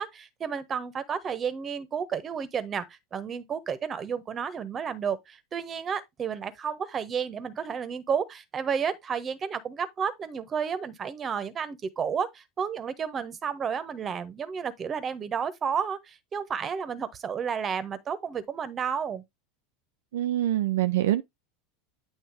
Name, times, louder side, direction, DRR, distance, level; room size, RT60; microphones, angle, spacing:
voice 1, 0.0-19.2, right 7 dB, 30° right, 1.2 m, -31 dB
voice 2, 20.1-21.2, right 13 dB, 75° right, 0.4 m, -25 dB
8.8 x 3.0 x 4.6 m
hypercardioid pair, 90°, 0 cm